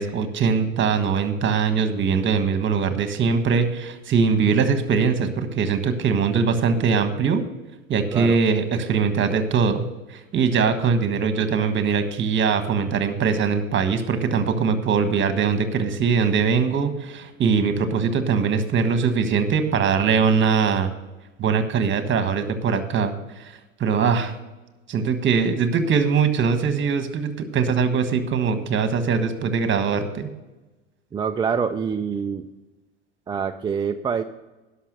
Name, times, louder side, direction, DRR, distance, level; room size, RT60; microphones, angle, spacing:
voice 1, 0.0-7.4 7.9-9.8 10.1-20.9 21.4-23.1 23.4-24.3 24.9-30.3, right 5 dB, 30° right, 9 dB, 1.4 m, -22 dB
voice 2, 31.1-32.5 33.3-34.2, right 6 dB, 15° right, 6 dB, 0.3 m, -25 dB
12.0 x 5.8 x 6.6 m, 1.1 s
hypercardioid pair, 85°, 36 cm